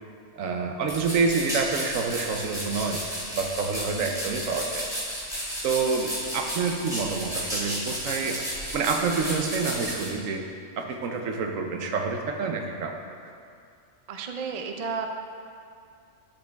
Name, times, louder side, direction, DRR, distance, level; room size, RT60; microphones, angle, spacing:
voice 1, 0.4-3.0 3.3-4.9 5.6-8.4 8.7-10.4 10.8-13.0, right 4 dB, 80° right, 3 dB, 1.2 m, -28 dB
sound 1, 0.9-10.1, equal, 5° right, 1.8 m, -33 dB
voice 2, 14.1-15.1, right 5 dB, 55° right, 4 dB, 0.4 m, -33 dB
12.0 x 5.1 x 3.5 m, 2.3 s
omnidirectional pair, 1.4 m